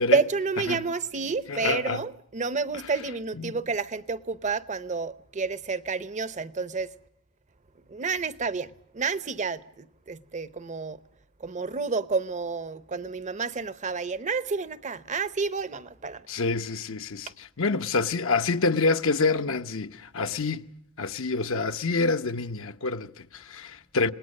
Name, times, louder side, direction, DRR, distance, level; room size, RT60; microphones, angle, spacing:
voice 1, 0.0-6.9 7.9-11.0 11.4-16.2, right 4 dB, 35° right, 0.8 m, -30 dB
voice 2, 1.5-2.0 2.7-2.9 3.4-3.6 16.3-20.7 21.0-24.1, left 3 dB, 65° left, 0.9 m, -27 dB
27.5 x 19.5 x 6.5 m
head